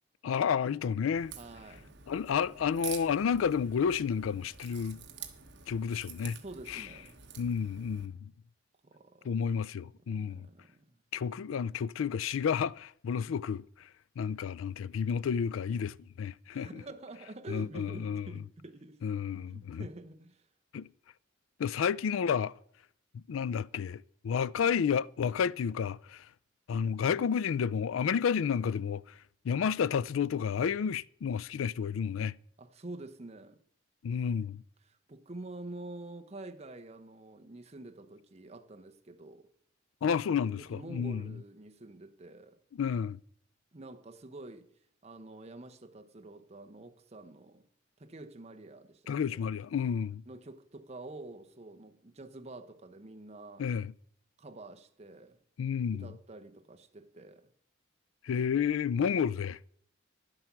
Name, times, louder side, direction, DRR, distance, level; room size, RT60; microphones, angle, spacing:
voice 1, 0.2-1.3 2.1-5.0 5.7-6.4 6.7-6.9 7.4-8.3 9.2-10.5 11.1-13.6 14.2-16.7 17.5-18.2 19.0-19.8 20.7-20.9 21.6-22.5 23.1-26.2 26.7-29.0 29.4-32.3 34.0-34.6 40.0-41.3 42.8-43.2 49.1-50.2 53.6-53.9 55.6-56.1 58.2-59.6, left 7 dB, 85° left, 0.4 m, -31 dB
Crack, 1.2-8.1, right 8 dB, 60° right, 1.2 m, -48 dB
voice 2, 1.3-1.9 6.4-7.2 8.8-9.4 10.1-10.9 16.5-19.0 19.5-20.4 32.6-33.6 34.8-39.5 40.4-42.6 43.7-44.7 45.0-47.7 48.0-49.4 50.3-53.7 54.4-55.4 55.9-57.5, right 2 dB, 30° right, 0.8 m, -47 dB
11.0 x 7.7 x 5.9 m
head